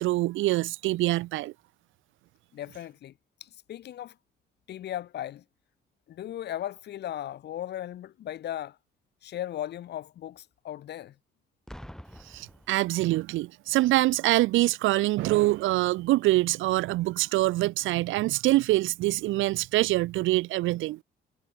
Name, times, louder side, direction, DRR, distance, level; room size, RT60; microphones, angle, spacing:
voice 1, 0.0-1.5 12.3-21.0, right 17 dB, 80° right, 0.4 m, -25 dB
voice 2, 2.5-3.1 3.4-4.1 4.7-5.4 6.1-8.8 9.2-11.1, left 12 dB, 60° left, 0.6 m, -37 dB
Boom, 11.7-13.4 14.3-14.6, equal, 5° left, 3.5 m, -47 dB
cardioid pair, 90°, 20 cm